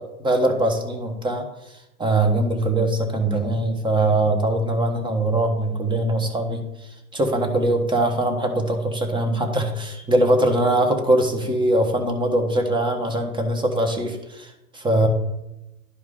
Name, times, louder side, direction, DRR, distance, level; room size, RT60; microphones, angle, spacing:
voice 1, 0.2-1.4 2.0-6.6 7.1-15.1, right 1 dB, 10° right, 5 dB, 1.2 m, -22 dB
11.5 x 4.7 x 3.7 m, 0.93 s
figure-of-eight pair, 100°, 44 cm